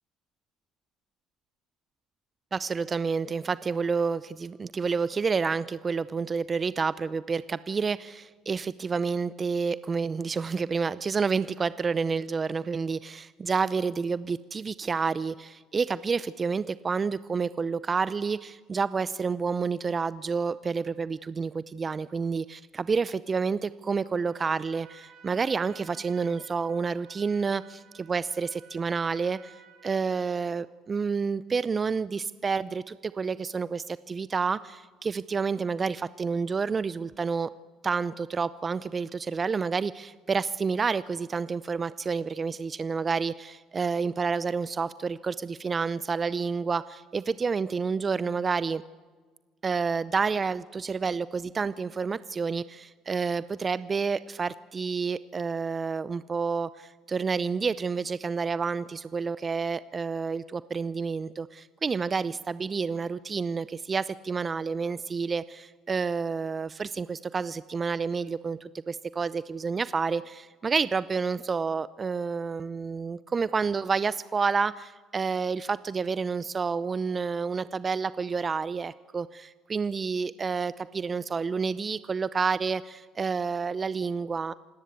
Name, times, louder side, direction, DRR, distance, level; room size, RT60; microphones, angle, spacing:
voice 1, 2.5-29.6 29.8-37.5 37.8-48.8 49.6-84.5, right 5 dB, 35° right, 17 dB, 0.6 m, -29 dB
Trumpet, 24.1-30.6, right 7 dB, 75° right, 6.3 m, -55 dB
27.5 x 17.5 x 8.3 m, 1.4 s
hypercardioid pair, 70°, 0 cm